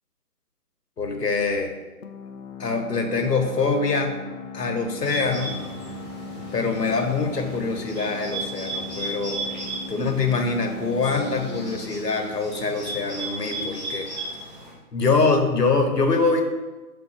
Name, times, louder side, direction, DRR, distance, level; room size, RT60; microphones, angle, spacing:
voice 1, 1.0-1.7 2.6-4.1 4.5-5.5 6.5-9.4 9.9-14.1 14.9-16.4, left 4 dB, 85° left, 4 dB, 1.4 m, -24 dB
sound 1, 2.0-13.4, left 4 dB, 55° left, 0.7 m, -39 dB
Bird, 5.0-14.7, right 2 dB, 30° right, 2.3 m, -35 dB
7.1 x 4.2 x 4.3 m, 1.1 s
hypercardioid pair, 170°, 47 cm